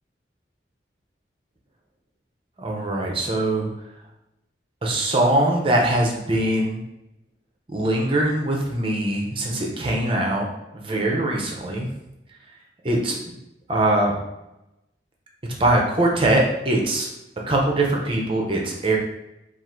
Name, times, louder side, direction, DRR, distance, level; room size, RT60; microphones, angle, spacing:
voice 1, 2.6-3.7 4.8-6.8 7.7-11.9 12.8-13.2 13.7-14.2 15.6-17.1 17.5-19.0, right 1 dB, 30° right, -1 dB, 0.7 m, -22 dB
3.7 x 2.5 x 4.3 m, 0.91 s
head